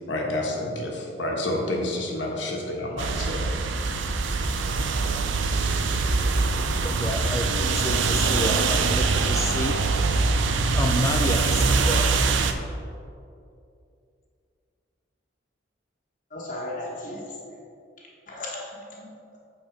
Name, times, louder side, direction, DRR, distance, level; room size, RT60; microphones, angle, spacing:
voice 1, 0.0-3.4 4.5-4.7, left 1 dB, 75° left, -1 dB, 1.3 m, -29 dB
sound 1, 3.0-12.5, right 4 dB, 80° right, 0.5 m, -23 dB
voice 2, 6.8-9.8 10.7-12.1, left 1 dB, 15° left, 3 dB, 0.4 m, -30 dB
voice 3, 16.3-17.6 18.3-19.1, left 1 dB, 40° left, -5 dB, 1.2 m, -36 dB
8.6 x 4.0 x 5.1 m, 2.5 s
head